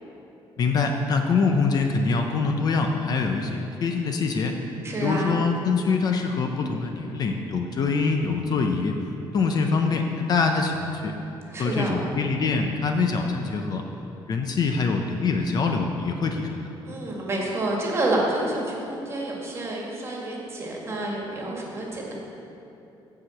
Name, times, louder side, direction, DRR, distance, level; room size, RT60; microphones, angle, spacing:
voice 1, 0.6-4.6 5.0-8.9 9.3-11.1 11.6-13.8 14.3-16.6, left 4 dB, 45° left, 4 dB, 0.6 m, -24 dB
voice 2, 4.8-5.4 11.5-11.9 16.8-22.1, right 1 dB, 30° right, -2 dB, 1.8 m, -28 dB
8.8 x 4.9 x 7.6 m, 2.9 s
cardioid pair, 140°, 10 cm